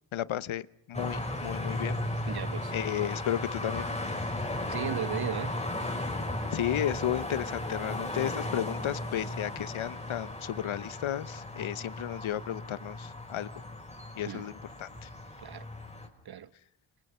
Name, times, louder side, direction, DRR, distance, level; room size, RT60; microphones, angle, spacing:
voice 1, 0.1-2.0 2.7-3.9 6.5-13.5 14.2-15.1, left 11 dB, 80° left, 1.0 m, -33 dB
sound 1, 0.9-16.1, left 1 dB, 15° left, 5.5 m, -36 dB
voice 2, 2.2-2.7 4.7-5.6 14.3-14.5 15.4-15.7 16.2-16.5, right 9 dB, 50° right, 1.2 m, -36 dB
29.0 x 27.0 x 5.6 m
cardioid pair, 80°, 47 cm